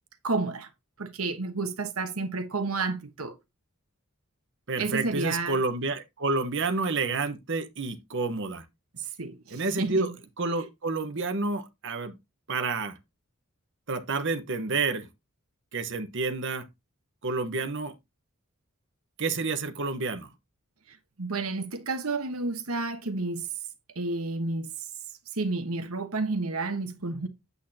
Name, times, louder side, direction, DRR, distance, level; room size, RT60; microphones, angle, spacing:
voice 1, 0.2-0.7 1.0-3.3 4.8-5.6 8.9-10.1 21.2-23.5 24.0-24.7 25.3-27.3, right 3 dB, 80° right, 1.2 m, -31 dB
voice 2, 4.7-8.6 9.5-12.1 12.5-13.0 13.9-15.1 15.7-16.7 17.2-17.9 19.2-20.3, right 3 dB, 60° right, 1.2 m, -29 dB
8.3 x 8.3 x 2.8 m
head